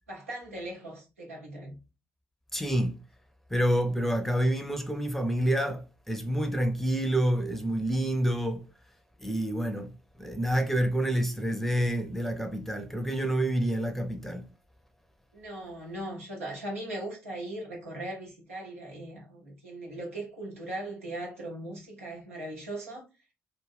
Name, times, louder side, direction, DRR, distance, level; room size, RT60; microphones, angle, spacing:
voice 1, 0.1-1.8 15.3-23.0, right 1 dB, 90° right, 0.8 m, -39 dB
voice 2, 2.5-2.9 3.5-8.6 9.2-9.9 10.2-14.4, right 1 dB, 5° left, 0.6 m, -28 dB
2.4 x 2.2 x 3.3 m
hypercardioid pair, 45°, 7 cm